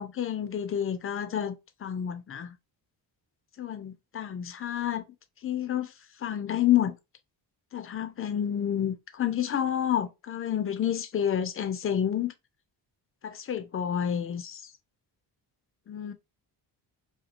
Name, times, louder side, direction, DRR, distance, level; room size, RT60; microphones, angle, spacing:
voice 1, 0.0-1.6 1.8-2.5 3.6-5.1 5.4-5.9 6.2-6.9 7.7-12.3 13.2-14.6 15.9-16.1, left 10 dB, 35° left, 0.4 m, -29 dB
3.0 x 2.3 x 2.4 m
cardioid pair, 120°, 44 cm